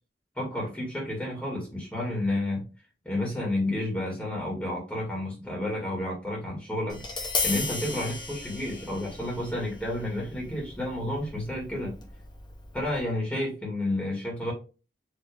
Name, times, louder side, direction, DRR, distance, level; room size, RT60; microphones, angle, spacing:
voice 1, 0.4-2.7 3.0-11.9 12.7-14.5, left 1 dB, 10° left, -3 dB, 1.8 m, -31 dB
Tap, 6.9-13.0, left 3 dB, 25° left, 1.2 m, -36 dB
4.8 x 2.9 x 3.5 m, 0.31 s
head